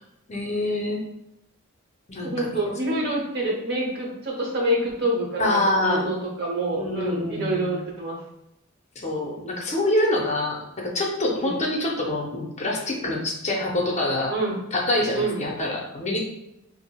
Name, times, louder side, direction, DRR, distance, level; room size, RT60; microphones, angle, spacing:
voice 1, 0.3-1.0 2.1-2.5 5.4-6.1 6.7-7.8 9.0-14.3 14.7-16.2, left 1 dB, 30° left, -1 dB, 0.6 m, -25 dB
voice 2, 2.2-8.2 11.4-11.6 14.3-14.6 15.1-15.4, right 1 dB, 50° right, -1 dB, 0.9 m, -27 dB
5.8 x 2.0 x 2.2 m, 0.87 s
head